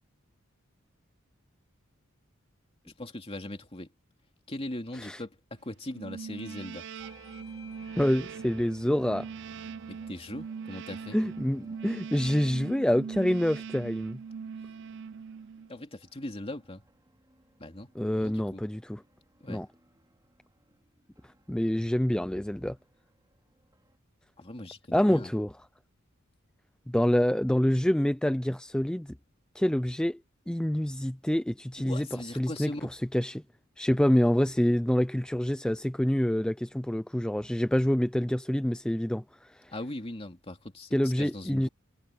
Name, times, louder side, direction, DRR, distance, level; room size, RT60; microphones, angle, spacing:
voice 1, 3.0-3.9 4.5-6.9 9.9-11.2 15.7-16.8 17.6-17.9 18.2-18.6 19.4-19.6 24.4-25.3 31.8-32.9 39.7-41.7, left 1 dB, 30° left, 2.7 m, -40 dB
sound 1, 5.9-15.8, right 6 dB, 60° right, 0.5 m, -41 dB
Bell / Doorbell, 6.5-11.6, left 7 dB, 85° left, 4.5 m, -60 dB
sound 2, 7.0-24.0, right 1 dB, 20° right, 3.8 m, -62 dB
voice 2, 8.0-9.3 11.1-14.2 18.0-19.0 19.5-19.7 21.5-22.8 24.9-25.5 26.9-29.1 29.6-30.2 30.5-33.4 33.8-39.7 40.9-41.7, equal, 5° left, 0.4 m, -27 dB
head